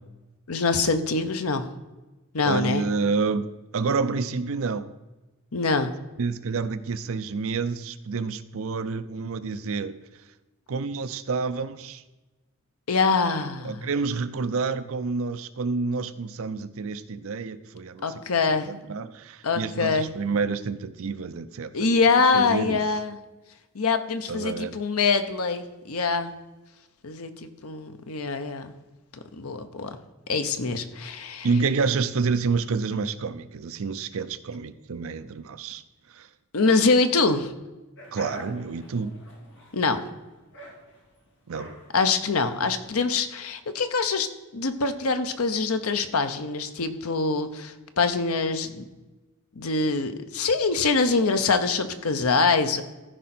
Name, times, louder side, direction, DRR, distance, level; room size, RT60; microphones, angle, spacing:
voice 1, 0.5-1.7 2.3-2.8 5.5-5.9 12.9-13.9 18.0-18.7 19.4-20.1 21.7-23.2 23.7-26.3 27.0-28.7 29.3-29.9 30.3-31.5 36.5-37.5 39.7-40.0 41.9-48.8 49.6-52.8, left 4 dB, 80° left, 9 dB, 0.9 m, -24 dB
voice 2, 2.4-4.9 6.2-10.0 10.7-12.0 13.6-18.1 18.5-21.9 22.3-22.8 24.3-24.8 31.4-35.8 36.1-36.3 38.1-39.2 41.5-41.7, right 4 dB, 65° right, 12 dB, 0.6 m, -28 dB
sound 1, 38.0-43.0, equal, 60° left, 2.1 m, -45 dB
14.5 x 5.1 x 4.3 m, 1.1 s
head